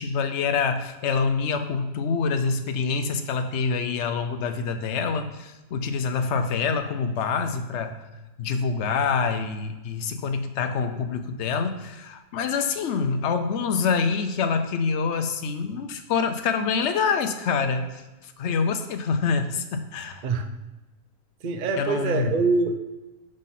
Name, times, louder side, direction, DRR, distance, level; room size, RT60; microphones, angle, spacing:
voice 1, 0.0-8.0 8.4-20.2 21.8-22.3, left 5 dB, 60° left, 7 dB, 0.8 m, -26 dB
voice 2, 21.4-22.8, right 4 dB, 55° right, 6 dB, 0.5 m, -24 dB
6.4 x 3.9 x 5.6 m, 1.1 s
omnidirectional pair, 1.6 m